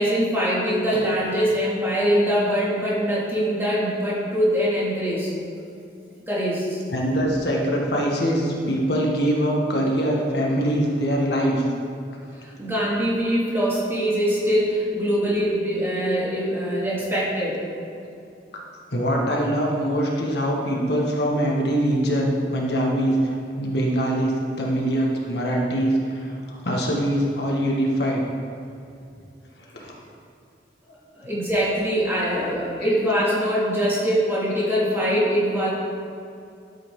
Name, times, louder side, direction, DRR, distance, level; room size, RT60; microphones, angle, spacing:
voice 1, 0.0-5.3 6.3-6.8 12.4-17.6 30.9-35.7, equal, 15° right, -7 dB, 2.5 m, -23 dB
voice 2, 6.9-11.6 18.5-18.6 18.9-24.3 24.6-28.2 29.7-29.9 32.8-33.0, equal, 70° left, -2 dB, 1.7 m, -23 dB
12.5 x 8.3 x 3.8 m, 2.6 s
head